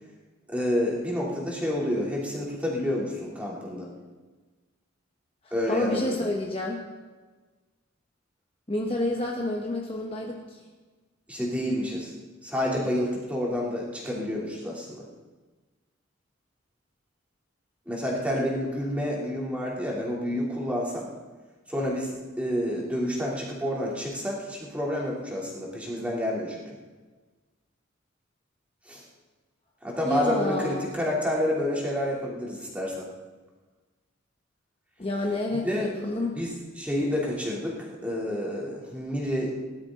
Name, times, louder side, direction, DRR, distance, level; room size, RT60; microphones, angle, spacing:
voice 1, 0.5-3.9 5.5-6.2 11.3-12.1 12.4-15.0 17.9-21.1 21.7-26.6 28.9-29.0 29.8-33.0 35.6-35.9 36.3-39.5, left 1 dB, 5° right, -4 dB, 3.0 m, -29 dB
voice 2, 5.7-6.8 8.7-10.6 30.0-30.9 35.0-36.4, left 1 dB, 30° left, 0 dB, 1.2 m, -29 dB
18.0 x 12.0 x 3.8 m, 1.3 s
head